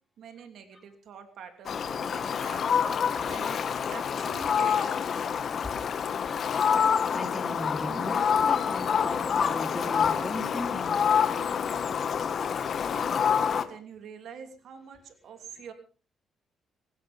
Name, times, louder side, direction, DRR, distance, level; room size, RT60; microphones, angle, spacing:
voice 1, 0.2-2.8 3.2-3.6 3.9-5.4 12.9-15.7, right 7 dB, 70° right, 7 dB, 2.9 m, -46 dB
Fowl, 1.7-13.6, left 7 dB, 55° left, 1.6 m, -27 dB
voice 2, 3.2-3.9 4.3-4.7 5.6-5.8 6.2-6.8 7.1-11.0, left 1 dB, 10° left, 4 dB, 3.5 m, -38 dB
19.0 x 17.5 x 3.6 m, 0.36 s
cardioid pair, 90°, 0 cm